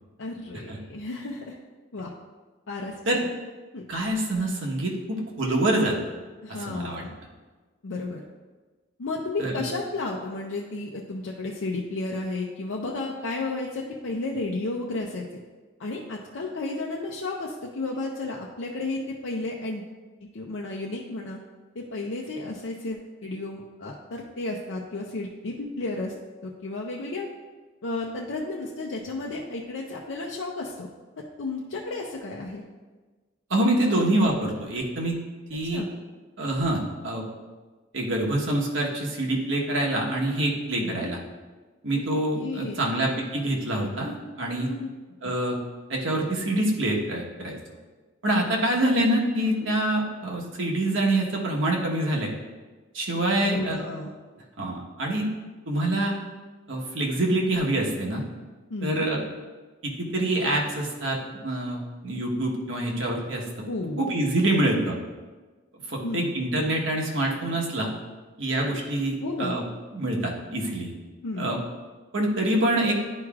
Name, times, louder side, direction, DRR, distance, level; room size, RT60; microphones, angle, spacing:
voice 1, 0.2-1.5 1.9-2.1 2.7-3.3 3.7-3.8 6.4-7.2 7.8-8.2 9.0-15.2 15.8-19.8 20.3-21.4 21.8-26.1 26.4-27.3 27.8-30.9 31.4-32.6 35.7-35.9 40.7-41.1 42.3-42.9 44.6-44.9 49.4-49.7 53.4-54.1 58.7-59.1 63.7-64.1 64.4-64.6 66.0-66.3 69.2-69.5 71.2-71.5, left 2 dB, 85° left, -2 dB, 0.6 m, -32 dB
voice 2, 3.9-5.9 6.5-7.0 9.4-9.7 33.5-35.1 35.5-35.8 36.4-37.2 37.9-41.2 41.8-44.7 45.2-45.6 45.9-47.6 48.2-52.3 52.9-53.8 54.6-55.3 55.7-56.1 56.7-58.2 58.8-59.2 59.8-63.7 64.0-65.0 65.9-67.9 68.4-69.6 69.9-70.9 71.4-71.6 72.1-73.0, right 1 dB, 85° right, -1 dB, 1.2 m, -26 dB
10.5 x 4.7 x 2.4 m, 1.3 s
head